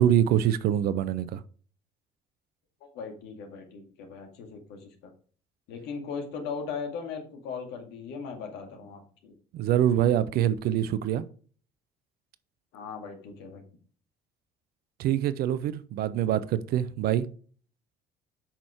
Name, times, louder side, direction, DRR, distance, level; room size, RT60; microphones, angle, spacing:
voice 1, 0.0-1.4 9.5-11.2 15.0-17.3, right 11 dB, 50° right, 0.6 m, -25 dB
voice 2, 2.8-5.1 5.7-9.3 12.7-13.6, left 5 dB, 60° left, 2.2 m, -38 dB
8.2 x 6.2 x 4.5 m
figure-of-eight pair, 55°, 20 cm